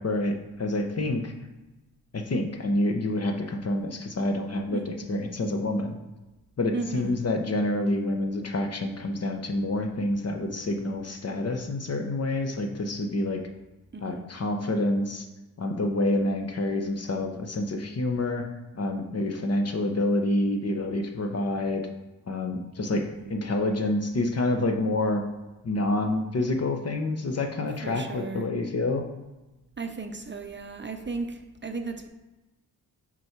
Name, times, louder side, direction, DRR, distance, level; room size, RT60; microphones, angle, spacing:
voice 1, 0.0-1.3 2.1-6.0 6.6-13.4 14.0-15.3 15.6-18.5 18.7-21.9 22.3-23.0 23.3-25.2 25.6-29.1, left 2 dB, 40° left, 4 dB, 0.9 m, -27 dB
voice 2, 4.7-5.1 6.7-7.1 13.9-14.2 22.9-23.3 27.8-28.5 29.8-32.1, right 4 dB, 30° right, 5 dB, 0.7 m, -35 dB
6.0 x 4.6 x 4.6 m, 1.1 s
cardioid pair, 75°, 37 cm